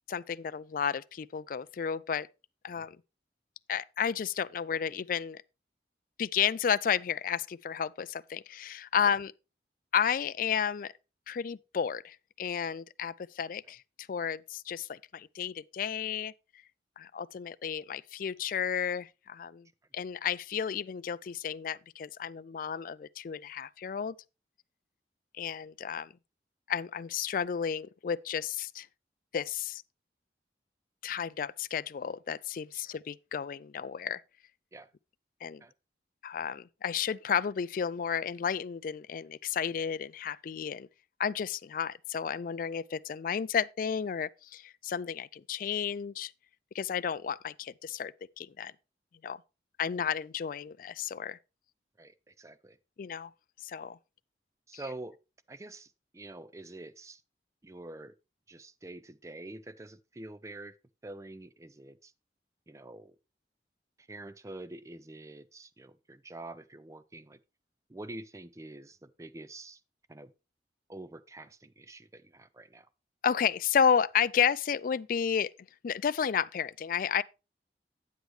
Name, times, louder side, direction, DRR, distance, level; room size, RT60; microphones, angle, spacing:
voice 1, 0.1-2.3 2.6-3.0 3.7-5.4 6.2-9.3 9.9-10.9 11.3-13.8 14.1-16.3 17.0-19.7 19.9-24.2 25.3-26.1 26.7-28.9 29.3-29.8 31.0-34.2 35.4-35.6 36.2-40.9 41.2-46.3 46.7-48.7 49.2-49.4 49.8-51.4 53.0-53.3 53.6-54.0 73.2-75.5 75.8-77.2, left 7 dB, 50° left, 0.3 m, -32 dB
voice 2, 52.0-52.8 54.7-55.2 55.5-57.2 57.6-58.1 58.5-60.8 61.0-62.1 62.7-63.2 64.0-67.4 67.9-69.8 70.1-70.3 70.9-72.9, right 2 dB, 15° right, 0.4 m, -46 dB
9.3 x 8.1 x 3.2 m
head